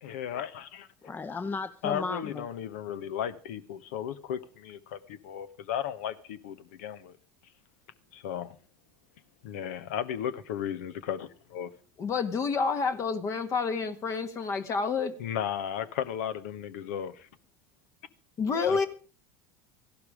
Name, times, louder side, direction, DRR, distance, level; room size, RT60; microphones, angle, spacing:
voice 1, 0.0-0.9 1.8-7.2 8.1-8.6 9.4-11.3 11.5-11.7 15.2-17.3 18.7-18.9, left 9 dB, 80° left, 14 dB, 1.2 m, -35 dB
voice 2, 1.0-2.5, left 4 dB, 25° left, 11 dB, 0.8 m, -35 dB
voice 3, 12.0-15.1 18.4-18.9, left 5 dB, 45° left, 9 dB, 1.6 m, -28 dB
15.5 x 12.0 x 5.0 m, 0.39 s
hypercardioid pair, 80°, 7 cm